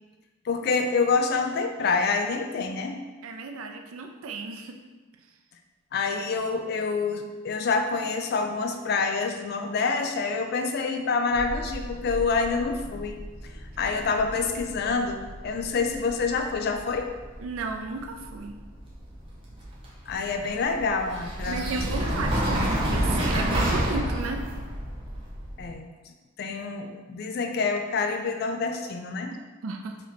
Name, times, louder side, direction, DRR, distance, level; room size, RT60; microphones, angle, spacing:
voice 1, 0.4-3.0 5.9-13.2 13.8-17.1 20.1-21.8 25.6-25.9 26.4-29.3, left 4 dB, 50° left, 5 dB, 0.3 m, -27 dB
voice 2, 3.2-4.8 17.4-18.6 21.5-24.4 29.6-30.0, right 3 dB, 80° right, 4 dB, 0.4 m, -34 dB
sound 1, 11.3-25.7, right 1 dB, 25° right, 0.6 m, -31 dB
3.1 x 2.8 x 4.0 m, 1.3 s
head